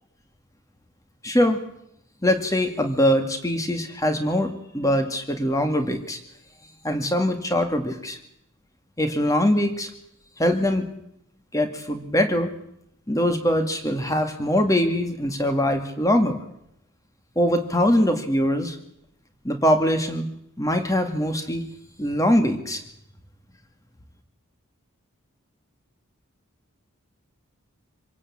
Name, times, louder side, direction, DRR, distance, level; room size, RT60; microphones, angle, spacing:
voice 1, 1.2-1.6 2.2-6.2 6.8-8.2 9.0-9.9 10.4-10.9 11.5-12.5 13.1-16.4 17.4-18.8 19.4-20.3 20.6-21.6 22.0-22.8, equal, 15° left, 7 dB, 2.0 m, -22 dB
26.0 x 17.0 x 8.7 m, 0.79 s
head